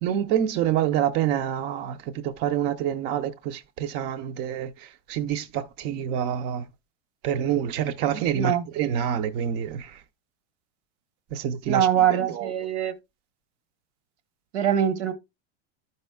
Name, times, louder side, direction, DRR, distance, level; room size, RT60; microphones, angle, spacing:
voice 1, 0.0-6.7 7.2-10.0 11.3-12.5, right 9 dB, 30° right, 0.4 m, -27 dB
voice 2, 8.4-8.7 11.7-12.9 14.5-15.1, right 10 dB, 75° right, 1.1 m, -23 dB
12.0 x 5.3 x 2.2 m
supercardioid pair, 150°, 35 cm